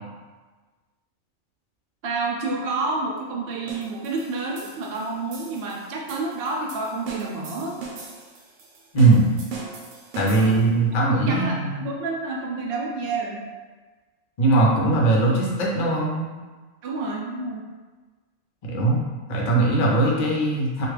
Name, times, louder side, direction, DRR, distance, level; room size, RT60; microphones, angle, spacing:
voice 1, 2.0-7.8 10.3-10.7 11.3-13.4 16.8-17.6, right 3 dB, 60° right, -2 dB, 0.7 m, -29 dB
sound 1, 3.7-10.8, right 4 dB, 80° right, 1.0 m, -40 dB
voice 2, 8.9-9.3 10.1-11.8 14.4-16.3 18.6-19.0 19.3-20.9, right 2 dB, 45° left, -3 dB, 0.6 m, -20 dB
3.2 x 2.4 x 3.2 m, 1.3 s
omnidirectional pair, 1.3 m